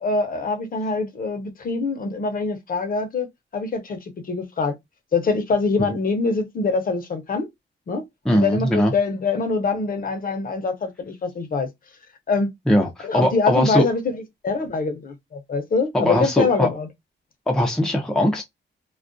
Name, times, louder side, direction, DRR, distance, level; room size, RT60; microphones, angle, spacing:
voice 1, 0.0-3.3 3.5-4.7 5.1-7.5 7.9-8.0 8.3-11.7 12.3-12.5 13.0-16.9, left 4 dB, 50° left, 0.6 m, -24 dB
voice 2, 8.3-8.9 12.7-13.9 15.9-16.7 17.5-18.4, equal, 5° left, 0.5 m, -20 dB
2.3 x 2.2 x 2.5 m
wide cardioid pair, 130°, 19 cm